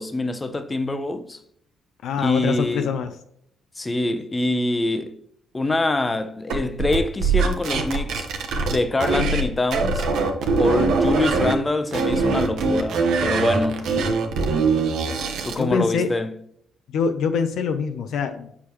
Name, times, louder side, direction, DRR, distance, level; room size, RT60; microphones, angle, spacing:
voice 1, 0.0-1.4 2.2-2.9 3.8-5.1 5.5-8.3 8.7-10.1 10.6-13.9 15.4-16.3, left 2 dB, 25° left, 0.7 m, -25 dB
voice 2, 2.0-3.1 15.6-16.1 16.9-18.5, left 6 dB, 65° left, 0.4 m, -24 dB
sound 1, 6.5-9.4 9.7-11.5 11.9-15.6, right 4 dB, 70° right, 0.8 m, -22 dB
6.8 x 4.8 x 3.0 m
hypercardioid pair, 45°, 0 cm